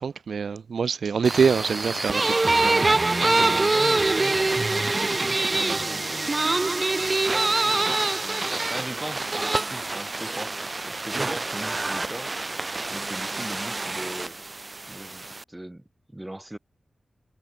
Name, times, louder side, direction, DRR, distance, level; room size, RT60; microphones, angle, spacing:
voice 1, 0.0-2.8, right 6 dB, 80° right, 0.4 m, -25 dB
sound 1, 1.2-15.4, right 3 dB, 30° right, 1.0 m, -25 dB
voice 2, 2.9-6.7 7.7-12.3 12.9-14.4 14.8-15.8 16.1-16.6, right 1 dB, 10° right, 1.3 m, -39 dB
wide cardioid pair, 130°, 0 cm